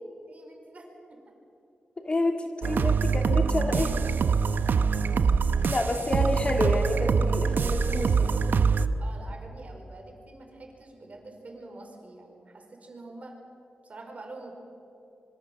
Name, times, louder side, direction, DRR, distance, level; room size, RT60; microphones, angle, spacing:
voice 1, 0.3-1.2 5.6-5.7 9.0-13.4 13.8-14.5, right 2 dB, 45° right, 2 dB, 5.3 m, -46 dB
voice 2, 2.0-4.0 5.7-8.3, left 2 dB, 30° left, 4 dB, 2.6 m, -29 dB
sound 1, 2.6-8.9, right 5 dB, 75° right, 0.9 m, -24 dB
25.5 x 24.0 x 7.6 m, 2.8 s
wide cardioid pair, 105°, 3 cm